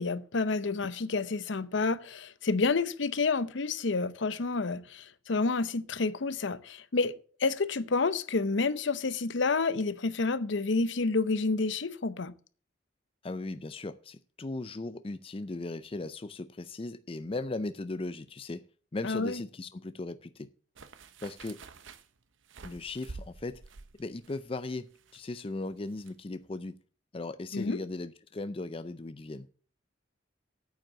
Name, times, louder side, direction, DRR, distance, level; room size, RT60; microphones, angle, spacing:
voice 1, 0.0-12.3 19.0-19.4 27.5-27.8, left 3 dB, 70° left, 0.7 m, -29 dB
voice 2, 13.2-18.6 18.9-20.5 21.2-21.6 22.6-23.6 24.0-26.8 27.1-29.5, left 2 dB, 30° left, 0.4 m, -37 dB
sound 1, 20.7-26.1 26.4-26.5, right 3 dB, 80° right, 0.9 m, -49 dB
9.1 x 7.9 x 7.3 m
head